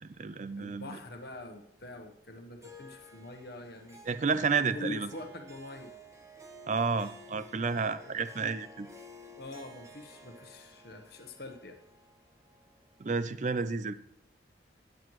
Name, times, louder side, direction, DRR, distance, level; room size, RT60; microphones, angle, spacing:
voice 1, 0.0-1.0 4.1-5.1 6.7-8.9 13.0-13.9, right 5 dB, 40° right, 14 dB, 0.4 m, -31 dB
voice 2, 0.6-4.0 4.7-5.9 9.4-11.8, left 2 dB, 60° left, 4 dB, 1.0 m, -44 dB
Harp, 2.6-13.2, equal, 15° right, 1.1 m, -53 dB
16.5 x 9.3 x 3.1 m, 0.76 s
head